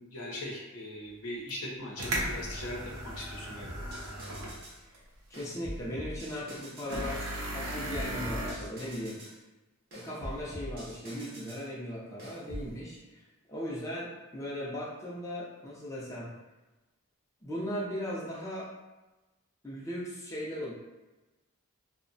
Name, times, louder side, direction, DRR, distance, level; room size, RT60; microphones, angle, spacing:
voice 1, 0.0-3.8, left 1 dB, 80° left, -2 dB, 0.6 m, -40 dB
sound 1, 1.5-1.6 2.0-4.6 4.9-5.0 6.9-8.5, right 1 dB, 85° right, 0.5 m, -36 dB
sound 2, 3.6-4.8 5.3-7.1 7.6-9.4 9.9-11.7 12.2-12.7, equal, 45° right, 0.7 m, -43 dB
voice 2, 5.3-9.2 9.9-16.3 17.4-18.7 19.6-20.7, equal, 15° left, -6 dB, 0.4 m, -38 dB
2.6 x 2.1 x 2.6 m, 1.1 s
head